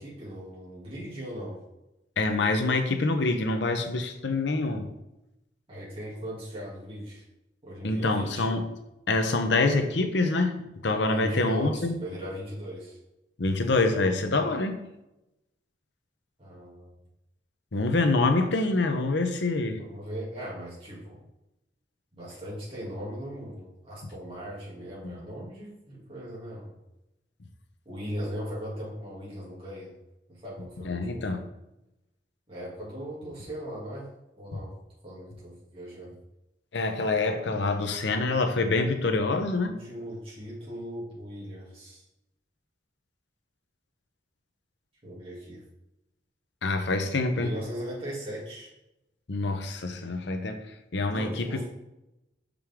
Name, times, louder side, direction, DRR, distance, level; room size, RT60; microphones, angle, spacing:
voice 1, 0.0-1.6 5.7-7.2 7.6-8.5 10.9-13.0 16.4-16.9 19.8-21.2 22.1-26.7 27.9-29.9 30.3-31.3 32.5-34.1 34.4-34.7 35.0-36.2 39.6-42.0 45.0-45.6 47.3-48.7 51.1-51.7, equal, 30° right, -7 dB, 2.4 m, -38 dB
voice 2, 2.2-4.9 7.8-8.6 9.1-10.6 10.8-12.0 13.4-14.9 17.7-19.8 25.0-25.1 30.8-31.4 34.5-34.6 36.7-39.7 46.6-47.5 49.3-50.6 50.9-51.7, left 3 dB, 75° left, 6 dB, 0.8 m, -26 dB
6.0 x 5.1 x 3.6 m, 0.92 s
head